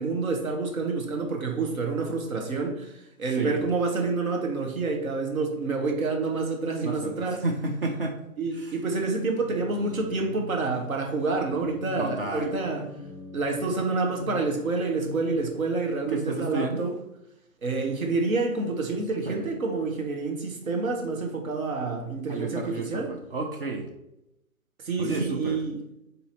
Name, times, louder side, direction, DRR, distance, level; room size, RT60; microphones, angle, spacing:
voice 1, 0.0-7.4 8.4-12.8 13.3-16.9 17.6-23.1 24.8-25.8, right 3 dB, 70° right, 3 dB, 1.0 m, -28 dB
voice 2, 3.3-3.6 6.8-8.2 8.5-8.8 12.0-12.5 16.1-16.9 19.3-19.5 22.3-23.9 25.0-25.6, right 2 dB, 40° right, 3 dB, 0.5 m, -31 dB
sound 1, 9.4-15.8, left 2 dB, ahead, 1.4 m, -41 dB
4.0 x 2.7 x 4.2 m, 0.84 s
figure-of-eight pair, 130°, 43 cm